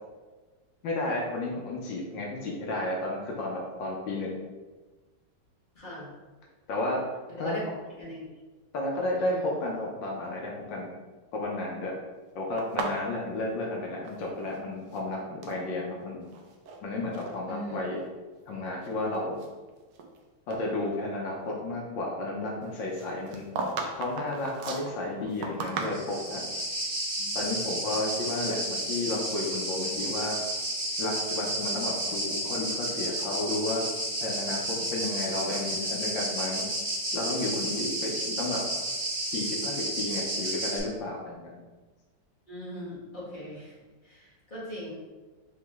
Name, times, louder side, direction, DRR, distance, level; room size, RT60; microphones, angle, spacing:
voice 1, 0.8-4.3 6.7-7.0 7.4-7.7 8.7-10.9 11.3-11.9 12.3-16.3 16.8-18.0 18.4-19.4 20.5-23.5 23.9-26.5 27.3-30.3 31.0-33.8 34.2-36.7 37.1-38.6 39.1-41.6, left 2 dB, 70° left, -2 dB, 1.4 m, -32 dB
voice 2, 5.8-6.1 7.4-7.6 8.0-8.2 9.1-9.4 17.5-17.8 27.2-27.3 42.5-43.7 44.5-45.0, equal, 25° left, -8 dB, 1.4 m, -39 dB
sound 1, 12.6-14.6 14.8-15.6 16.2-16.8 17.1-17.4 18.0-18.1 18.7-20.2 20.5-20.6 22.9-26.4, right 3 dB, 70° right, 1.1 m, -36 dB
sound 2, 25.8-40.8, right 1 dB, 35° right, 1.2 m, -32 dB
5.1 x 3.0 x 3.5 m, 1.3 s
omnidirectional pair, 2.2 m